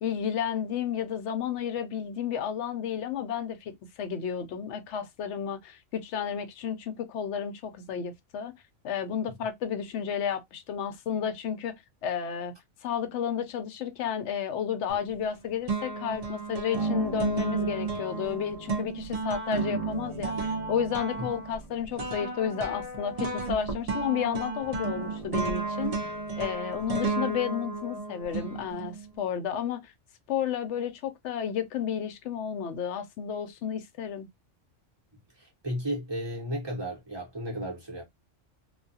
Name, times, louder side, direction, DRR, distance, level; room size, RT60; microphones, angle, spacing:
voice 1, 0.0-3.7 4.0-8.5 8.8-11.7 12.0-12.5 12.8-26.1 26.4-29.9 30.3-34.3, left 8 dB, 70° left, 0.8 m, -32 dB
sound 1, 14.9-15.4 15.7-29.1, right 4 dB, 45° right, 0.5 m, -33 dB
voice 2, 35.4-38.0, equal, 20° right, 1.0 m, -34 dB
2.4 x 2.3 x 2.6 m
omnidirectional pair, 1.3 m